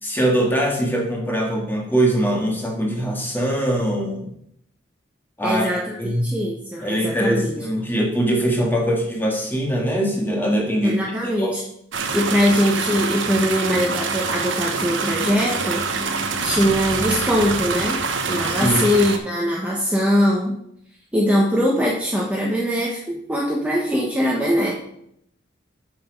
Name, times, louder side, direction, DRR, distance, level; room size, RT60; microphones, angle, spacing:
voice 1, 0.0-4.3 5.4-5.7 6.0-6.3 6.8-11.0 11.4-11.5 18.5-19.0, right 1 dB, 10° left, 0 dB, 1.7 m, -22 dB
voice 2, 5.4-7.6 10.8-11.6 12.1-15.9 16.4-18.0 18.3-20.6 21.1-24.7, equal, 5° right, -3 dB, 1.1 m, -21 dB
sound 1, 11.9-19.2, right 4 dB, 80° right, 1.0 m, -25 dB
7.7 x 5.9 x 5.2 m, 0.72 s
head